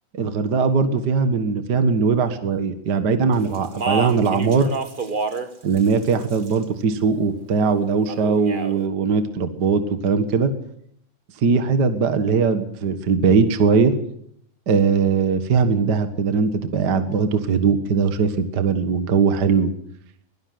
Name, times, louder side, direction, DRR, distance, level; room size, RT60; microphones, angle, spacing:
voice 1, 0.1-4.7 5.6-10.5 11.4-13.9 14.7-19.7, right 5 dB, 45° right, 9 dB, 1.5 m, -20 dB
Speech, 3.5-5.5 5.8-6.6 8.1-8.7, right 3 dB, 65° right, 0.5 m, -28 dB
22.5 x 17.0 x 7.8 m, 0.70 s
omnidirectional pair, 3.6 m